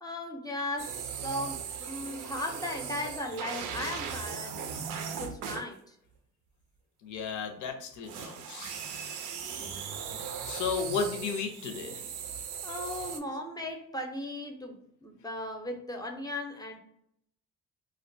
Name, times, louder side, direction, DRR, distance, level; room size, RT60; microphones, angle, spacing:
voice 1, 0.0-4.6 4.9-5.9 12.6-16.8, left 1 dB, 15° left, 2 dB, 0.5 m, -37 dB
sound 1, 0.8-5.7 8.0-13.2, right 7 dB, 85° right, 0.5 m, -38 dB
voice 2, 7.0-8.8 10.4-12.0, left 5 dB, 80° left, 5 dB, 0.6 m, -34 dB
2.4 x 2.2 x 2.6 m, 0.73 s
cardioid pair, 90°, 30 cm